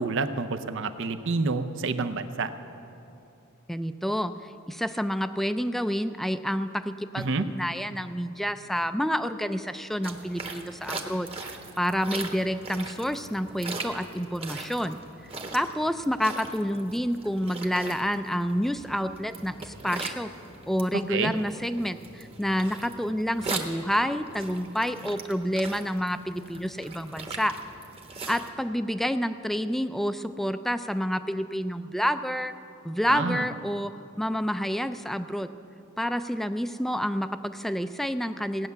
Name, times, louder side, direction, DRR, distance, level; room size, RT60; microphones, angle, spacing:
voice 1, 0.0-2.5 7.2-7.5 21.1-21.3 33.1-33.4, right 4 dB, 65° right, 10 dB, 0.6 m, -28 dB
voice 2, 3.7-4.3 4.7-11.3 11.8-15.0 15.5-20.3 20.7-27.5 28.3-32.5 32.8-35.5 36.0-38.7, equal, ahead, 10 dB, 0.3 m, -29 dB
sound 1, 10.0-28.5, right 3 dB, 30° right, 1.1 m, -40 dB
17.0 x 9.4 x 6.9 m, 2.8 s
head